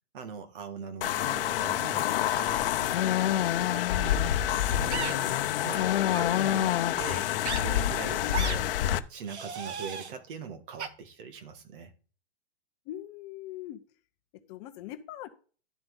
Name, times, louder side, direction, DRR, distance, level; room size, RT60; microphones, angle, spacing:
voice 1, 0.1-7.4 7.6-8.7 9.1-11.9, right 6 dB, 50° right, 2.0 m, -42 dB
sound 1, 1.0-9.0, left 12 dB, 55° left, 0.9 m, -27 dB
sound 2, 4.9-5.1 6.1-6.3 7.4-7.6 8.3-8.6 9.2-10.1 10.8-10.9, right 6 dB, 90° right, 1.7 m, -35 dB
voice 2, 12.9-13.8 14.5-15.3, left 12 dB, 25° left, 0.8 m, -41 dB
11.5 x 7.7 x 3.9 m
hypercardioid pair, 160°, 33 cm